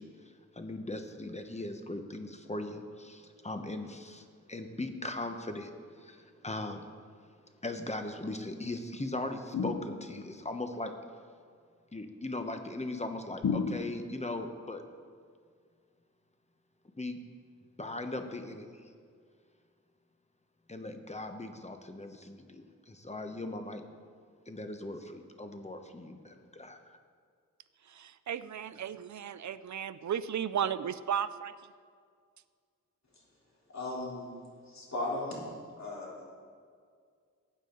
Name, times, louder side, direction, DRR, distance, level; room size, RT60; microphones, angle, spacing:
voice 1, 0.0-6.8 7.6-10.9 11.9-14.8 17.0-17.2 17.8-18.8 20.7-23.8 24.5-27.0, left 2 dB, 20° left, 6 dB, 1.0 m, -39 dB
sound 1, 9.5-10.4 13.4-14.3, left 5 dB, 80° left, 0.8 m, -33 dB
voice 2, 27.9-31.5, right 9 dB, 65° right, 15 dB, 0.5 m, -34 dB
voice 3, 33.7-34.3 34.7-35.5 35.8-36.2, left 2 dB, 60° left, -5 dB, 3.6 m, -36 dB
16.0 x 8.9 x 3.9 m, 2.1 s
wide cardioid pair, 70°, 30 cm